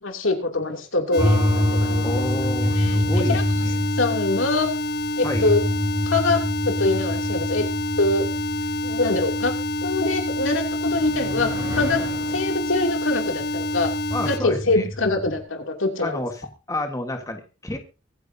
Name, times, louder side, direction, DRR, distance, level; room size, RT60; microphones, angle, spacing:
voice 1, 0.0-2.2 2.6-3.4 4.0-4.7 5.2-5.6 6.1-6.4 6.7-7.6 8.0-8.2 8.8-9.5 9.8-12.0 12.3-13.9 14.3-16.2, left 2 dB, 85° left, 4 dB, 2.8 m, -24 dB
sound 1, 1.1-14.4, left 1 dB, 50° left, 0.8 m, -28 dB
handrail close, 1.2-15.4, left 1 dB, 20° right, 3.3 m, -27 dB
voice 2, 2.0-3.8 5.2-5.5 14.1-14.9 16.0-17.8, left 1 dB, 15° left, 5 dB, 1.5 m, -30 dB
24.0 x 9.5 x 2.8 m, 0.33 s
head